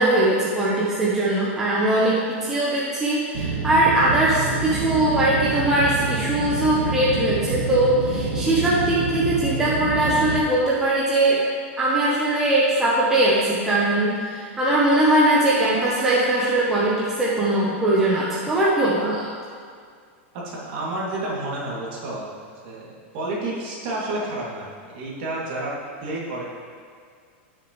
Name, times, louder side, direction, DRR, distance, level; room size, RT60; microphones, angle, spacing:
voice 1, 0.0-11.4 11.8-19.3, right 1 dB, 5° right, -7 dB, 0.9 m, -21 dB
sound 1, 3.3-10.4, right 4 dB, 60° right, 1.6 m, -27 dB
voice 2, 20.3-22.3 22.6-25.7 26.0-26.5, right 2 dB, 45° right, -5 dB, 2.5 m, -30 dB
15.5 x 6.4 x 3.2 m, 2.1 s
supercardioid pair, 175°, 7 cm